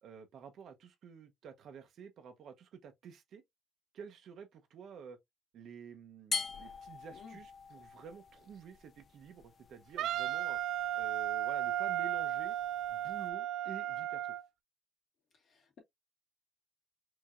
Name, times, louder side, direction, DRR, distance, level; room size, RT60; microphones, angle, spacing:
voice 1, 0.0-3.4 3.9-5.2 5.5-10.6 10.9-12.6 12.9-14.3, right 6 dB, 65° right, 0.7 m, -50 dB
sound 1, 6.3-13.3, left 5 dB, 45° left, 0.4 m, -45 dB
Wind instrument woodwind instrument, 10.0-14.4, right 12 dB, 85° right, 0.3 m, -35 dB
voice 2, 15.4-15.8, left 6 dB, 60° left, 2.1 m, -55 dB
4.6 x 2.7 x 2.4 m
cardioid pair, 120°, 0 cm